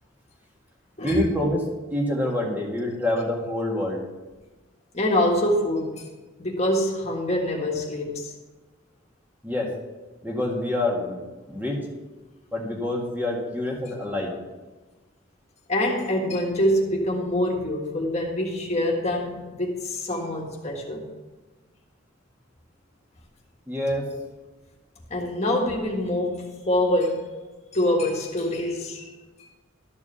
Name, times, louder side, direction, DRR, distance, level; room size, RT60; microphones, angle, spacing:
voice 1, 1.0-1.6 1.9-4.0 9.4-9.7 10.2-11.2 11.5-11.8 12.5-14.3 23.7-24.1, left 1 dB, 10° right, 1.8 m, -26 dB
voice 2, 4.9-6.1 6.4-8.3 15.7-21.1 25.1-27.3 27.7-29.1, left 1 dB, 30° left, 1.7 m, -25 dB
13.0 x 4.8 x 6.9 m
head